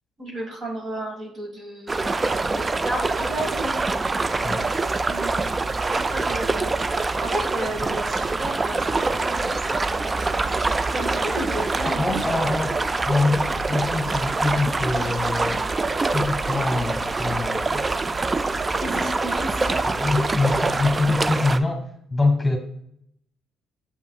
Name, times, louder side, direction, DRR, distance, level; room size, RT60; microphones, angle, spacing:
voice 1, 0.2-3.8 5.1-5.5 5.9-12.2 18.7-19.8, right 1 dB, 50° right, 0 dB, 1.7 m, -33 dB
sound 1, 1.9-21.6, right 3 dB, 25° right, 0.3 m, -25 dB
voice 2, 11.9-15.6 16.1-17.8 19.9-21.8 22.1-22.6, left 3 dB, 15° left, 3 dB, 1.5 m, -24 dB
7.6 x 5.5 x 2.3 m, 0.71 s
supercardioid pair, 75°, 0 cm